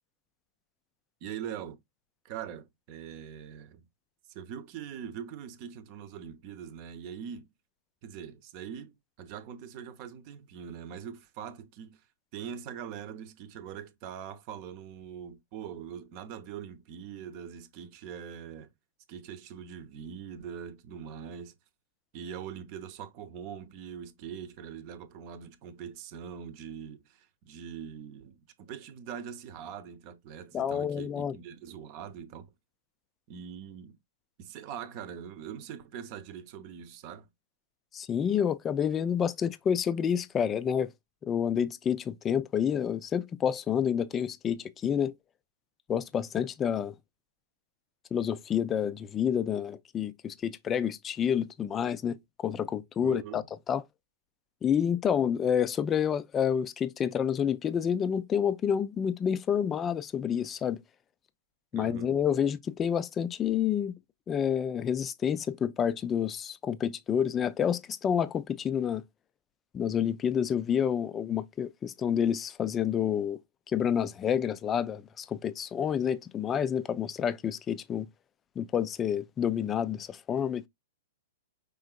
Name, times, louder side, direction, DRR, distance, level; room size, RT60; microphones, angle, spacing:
voice 1, 1.2-1.8 2.2-3.8 4.3-7.5 8.0-12.0 12.3-18.7 19.1-21.5 22.1-32.5 33.3-34.0 34.4-37.3 53.0-53.5 61.7-62.1, right 8 dB, 45° right, 0.8 m, -42 dB
voice 2, 30.5-31.4 37.9-40.9 41.2-45.1 45.9-46.9 48.1-53.8 54.6-60.8 61.7-63.9 64.3-69.0 69.7-73.4 73.7-78.1 78.6-80.7, left 8 dB, 20° left, 0.4 m, -29 dB
5.2 x 3.9 x 2.4 m
hypercardioid pair, 135°, 0 cm